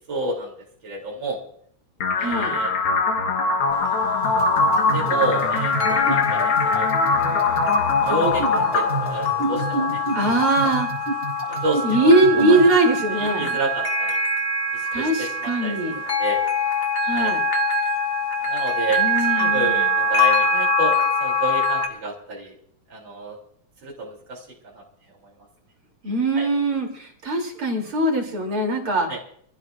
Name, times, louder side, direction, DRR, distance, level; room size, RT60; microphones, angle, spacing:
voice 1, 0.1-0.5 0.8-1.4 2.2-2.7 4.9-6.9 8.0-10.0 10.4-10.7 11.5-12.1 12.5-12.6 13.1-14.2 14.7-15.8 16.0-16.4 17.1-17.3 18.4-19.0 19.3-22.6 22.9-23.4 23.8-24.8 26.4-26.5 29.1-29.2, right 2 dB, 60° right, -2 dB, 4.1 m, -30 dB
sound 1, 2.0-10.0, left 3 dB, 70° left, 2.4 m, -23 dB
voice 2, 2.2-2.6 10.1-10.9 11.8-13.6 14.9-15.9 17.0-17.4 19.0-19.8 26.0-29.1, right 1 dB, 75° right, 0 dB, 4.3 m, -21 dB
sound 2, 3.7-21.9, left 2 dB, 40° left, 2.0 m, -24 dB
sound 3, 4.2-12.7, right 2 dB, 30° right, 4.7 m, -30 dB
26.0 x 16.0 x 2.6 m, 0.63 s
omnidirectional pair, 2.4 m